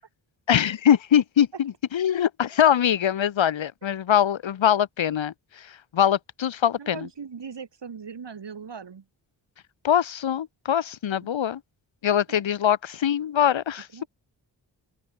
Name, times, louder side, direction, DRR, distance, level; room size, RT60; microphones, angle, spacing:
voice 1, 0.5-5.7 5.9-7.1 9.8-11.6 12.0-14.0, left 9 dB, 85° left, 1.7 m, -23 dB
voice 2, 6.8-9.0 12.3-12.4 13.9-14.1, right 6 dB, 65° right, 7.3 m, -39 dB
open air
cardioid pair, 70°, 45 cm